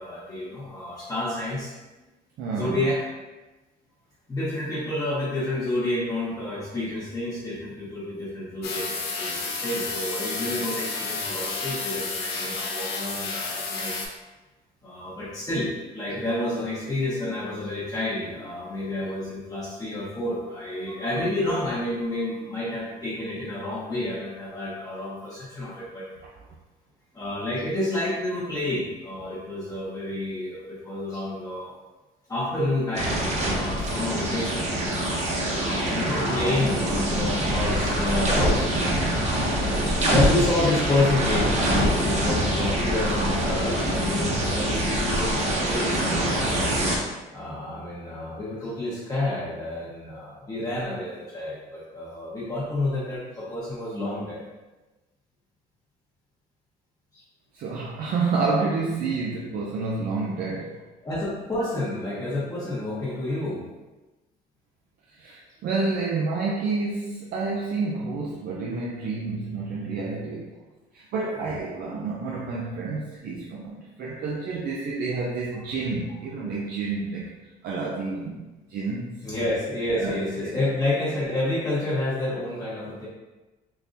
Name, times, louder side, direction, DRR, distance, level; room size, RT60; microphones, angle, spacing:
voice 1, 0.0-1.7 2.6-3.0 4.3-13.9 14.8-26.0 27.1-31.7 32.3-33.3 33.5-34.7 35.5-38.9 39.7-46.5 47.3-54.4 57.1-57.2 61.0-63.6 71.5-71.7 79.2-83.1, left 1 dB, 20° left, -8 dB, 1.0 m, -29 dB
voice 2, 2.4-2.8 57.5-60.8 65.1-70.6 70.9-77.3 77.6-79.3 79.9-80.6, right 3 dB, 65° right, -2 dB, 0.5 m, -29 dB
sound 1, 8.6-14.1, left 4 dB, 70° left, 0.7 m, -31 dB
sound 2, 32.9-47.0, right 1 dB, 45° right, 0.9 m, -24 dB
3.7 x 2.7 x 2.6 m, 1.1 s
cardioid pair, 110°, 17 cm